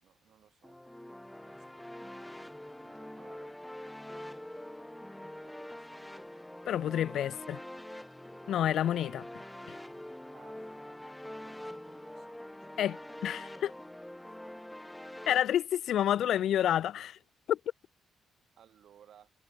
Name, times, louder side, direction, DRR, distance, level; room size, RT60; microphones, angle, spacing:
voice 1, 0.0-0.8 1.2-3.6 5.3-6.2 7.0-7.6 10.3-10.8 11.3-12.9 14.3-14.4 18.6-19.3, right 9 dB, 65° right, 6.7 m, -62 dB
sound 1, 0.6-15.4, left 1 dB, 5° left, 5.1 m, -45 dB
voice 2, 6.7-7.6 8.5-9.3 9.7-9.8 12.8-13.7 15.3-17.2 17.5-17.6, left 11 dB, 70° left, 0.7 m, -29 dB
cardioid pair, 90°, 0 cm